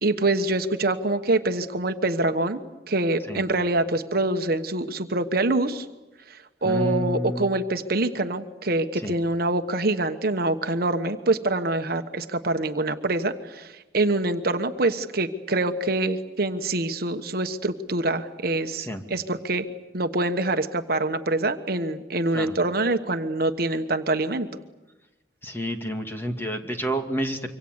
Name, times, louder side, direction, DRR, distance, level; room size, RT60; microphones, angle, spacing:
voice 1, 0.0-2.6 2.9-5.9 6.3-19.7 19.9-24.5, right 2 dB, 60° right, 8 dB, 1.3 m, -25 dB
voice 2, 6.6-7.5 9.0-9.2 18.8-19.0 22.3-22.6 25.4-27.5, equal, 15° left, 4 dB, 2.4 m, -29 dB
26.0 x 25.0 x 8.1 m, 1.1 s
head